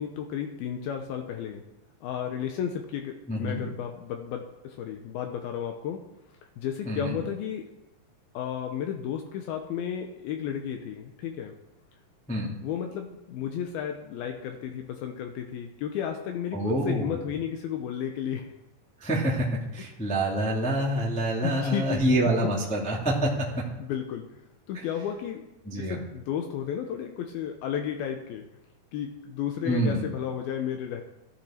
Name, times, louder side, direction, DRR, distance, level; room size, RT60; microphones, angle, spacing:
voice 1, 0.0-1.6 2.0-6.0 6.6-7.7 8.3-11.6 12.6-16.6 16.9-18.5 21.4-22.2 22.7-22.9 23.8-24.3 24.7-28.5 28.9-31.0, left 9 dB, 80° left, 4 dB, 2.7 m, -33 dB
voice 2, 3.3-3.6 6.8-7.2 12.3-12.5 16.5-17.2 19.0-23.3 25.6-26.0 29.6-30.0, right 1 dB, 5° left, -4 dB, 1.4 m, -26 dB
14.5 x 12.0 x 4.4 m, 0.92 s
omnidirectional pair, 4.5 m